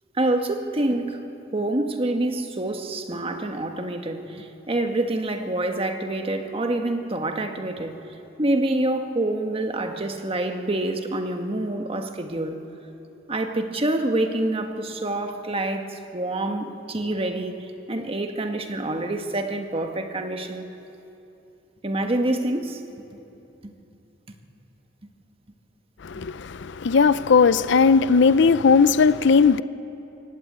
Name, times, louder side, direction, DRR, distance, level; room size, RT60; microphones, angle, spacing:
voice 1, 0.1-1.2 1.5-7.9 8.4-12.6 13.3-20.7 21.8-22.8 23.6-23.7, right 1 dB, 30° right, 1.4 m, -26 dB
voice 2, 26.0-29.6, left 5 dB, 65° left, 0.5 m, -17 dB
24.0 x 16.5 x 8.8 m
head